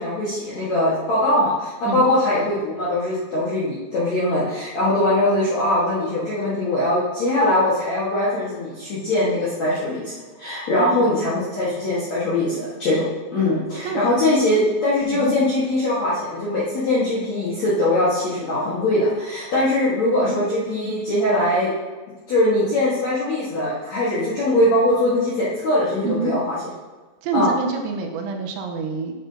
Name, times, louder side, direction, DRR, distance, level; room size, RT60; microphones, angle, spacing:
voice 1, 0.0-13.0 13.3-21.7 22.3-26.6 27.3-27.5, left 1 dB, 65° left, -9 dB, 1.7 m, -21 dB
voice 2, 10.8-11.1 13.8-14.0 15.1-15.4 20.2-20.4 26.0-26.3 27.2-29.2, right 4 dB, 85° right, 3 dB, 3.2 m, -26 dB
10.5 x 6.6 x 2.7 m, 1.3 s
omnidirectional pair, 5.4 m